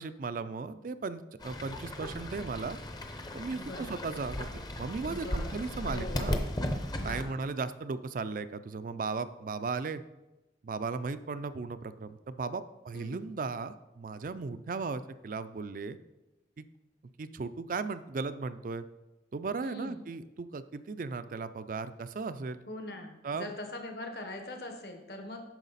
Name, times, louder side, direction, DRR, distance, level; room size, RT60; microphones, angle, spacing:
voice 1, 0.0-2.8 3.3-6.4 7.0-10.0 10.6-16.0 16.6-16.7 17.2-18.9 19.3-22.6 23.2-23.5, right 4 dB, 45° right, 13 dB, 0.4 m, -36 dB
Fowl / Bird, 1.4-7.2, left 1 dB, 20° left, 0.7 m, -36 dB
voice 2, 3.5-4.0 5.1-6.3 7.0-7.5 12.9-13.2 19.6-20.0 22.7-25.4, left 1 dB, 60° left, 4 dB, 1.2 m, -42 dB
9.1 x 6.4 x 4.1 m, 1.0 s
head